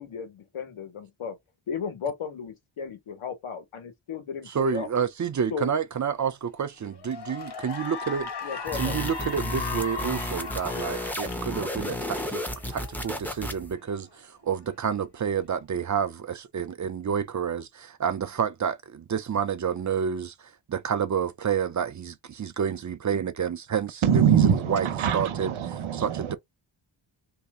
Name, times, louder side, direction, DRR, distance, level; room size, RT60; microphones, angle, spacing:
voice 1, 0.0-1.4 1.7-4.9 5.5-5.7 8.4-9.0, left 6 dB, 85° left, 1.3 m, -35 dB
voice 2, 4.5-8.3 8.8-12.4 12.7-24.4 24.7-24.9 25.1-25.5 25.9-26.4, right 7 dB, 40° right, 0.5 m, -29 dB
Cheering / Applause, 6.2-6.5 6.9-13.5, left 5 dB, 55° left, 1.3 m, -37 dB
sound 1, 8.7-13.7, left 1 dB, 5° left, 0.6 m, -33 dB
voice 3, 24.0-26.4, right 8 dB, 80° right, 0.9 m, -23 dB
3.1 x 2.8 x 3.6 m
wide cardioid pair, 140°, 48 cm